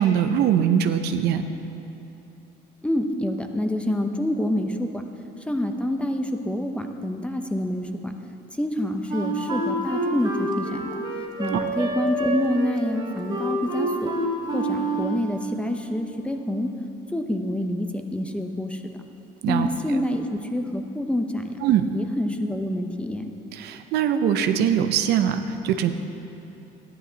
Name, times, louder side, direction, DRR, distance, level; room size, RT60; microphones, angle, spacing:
voice 1, 0.0-1.4 11.5-11.6 19.4-19.7 21.6-21.9 23.5-25.9, right 9 dB, 75° right, 8 dB, 0.6 m, -22 dB
voice 2, 2.8-5.0 5.5-8.1 8.6-11.0 11.4-14.1 14.5-16.7 17.1-18.8 19.5-21.6 21.9-23.3, left 1 dB, 5° left, 5 dB, 0.7 m, -27 dB
Wind instrument woodwind instrument, 9.1-15.4, right 2 dB, 30° right, 2.5 m, -28 dB
13.5 x 10.0 x 4.0 m, 2.8 s
cardioid pair, 110°, 17 cm